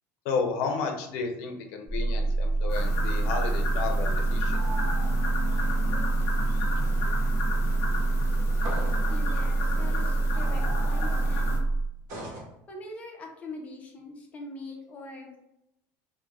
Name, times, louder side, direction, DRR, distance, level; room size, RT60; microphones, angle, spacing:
voice 1, 0.2-4.6, left 4 dB, 70° left, 4 dB, 0.5 m, -32 dB
sound 1, 1.9-11.9, right 2 dB, 20° right, 1.2 m, -26 dB
sound 2, 2.7-11.6, left 2 dB, 45° left, 0.9 m, -35 dB
sound 3, 8.6-9.1 12.1-12.5, right 1 dB, 50° right, 0.8 m, -37 dB
voice 2, 9.1-11.6 12.7-15.4, left 2 dB, 20° left, 0 dB, 0.6 m, -42 dB
3.0 x 2.2 x 2.3 m, 0.83 s
cardioid pair, 160°, 7 cm